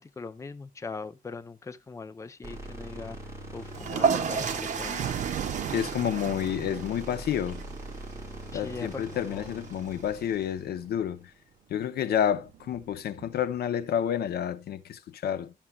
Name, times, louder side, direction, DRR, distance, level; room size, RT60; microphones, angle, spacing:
voice 1, 0.0-3.2 3.5-5.1 8.5-9.5, left 4 dB, 20° left, 0.5 m, -41 dB
sound 1, 2.4-11.6, right 1 dB, 20° right, 3.0 m, -42 dB
sound 2, 3.7-10.5, right 6 dB, 50° right, 1.2 m, -33 dB
Thunder, 3.8-11.0 12.0-13.8, right 11 dB, 65° right, 0.5 m, -40 dB
voice 2, 5.7-7.6 8.5-11.3 11.7-15.5, left 9 dB, 90° left, 0.8 m, -29 dB
12.5 x 7.3 x 2.3 m
wide cardioid pair, 145°, 16 cm